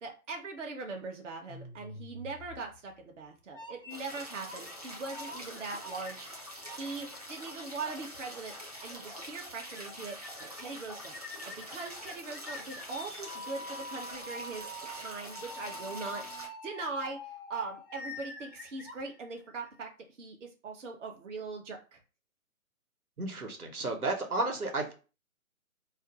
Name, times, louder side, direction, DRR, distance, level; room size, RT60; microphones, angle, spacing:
voice 1, 0.0-8.5 8.8-10.2 10.5-11.2 11.4-16.2 16.6-17.2 17.5-19.9 20.2-22.0, right 3 dB, 55° right, 2 dB, 0.8 m, -41 dB
sound 1, 1.5-3.0 3.5-4.7 5.1-6.9 7.4-7.5 8.5-8.6 8.9-9.0 9.2-9.3 9.6-9.8 10.1-10.6 11.0-19.7, left 1 dB, 40° left, 0.4 m, -46 dB
sound 2, 3.9-16.5, equal, 30° right, 0.4 m, -45 dB
voice 2, 23.2-24.9, right 2 dB, 85° right, 2 dB, 0.9 m, -32 dB
2.5 x 2.1 x 3.7 m, 0.34 s
figure-of-eight pair, 140°, 43 cm